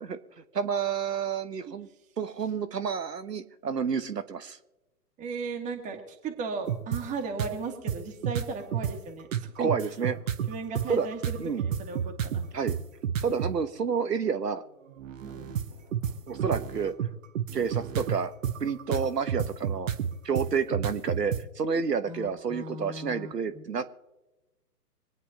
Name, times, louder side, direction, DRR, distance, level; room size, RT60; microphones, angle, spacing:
voice 1, 0.5-1.9 2.2-4.6 9.6-10.2 10.9-11.1 11.4-11.6 12.5-12.8 13.2-14.6 16.3-16.9 17.5-18.3 18.6-19.9 20.2-23.9, right 6 dB, 80° right, 11 dB, 1.2 m, -29 dB
voice 2, 5.2-9.7 10.5-12.5 15.2-16.4 22.1-23.7, right 4 dB, 15° right, 2 dB, 1.7 m, -37 dB
sound 1, 6.7-7.0 7.4-7.5 7.9-9.0 9.3-13.5 14.9-21.4, right 8 dB, 55° right, 1.1 m, -30 dB
25.5 x 9.5 x 2.9 m, 1.0 s
figure-of-eight pair, 130°, 47 cm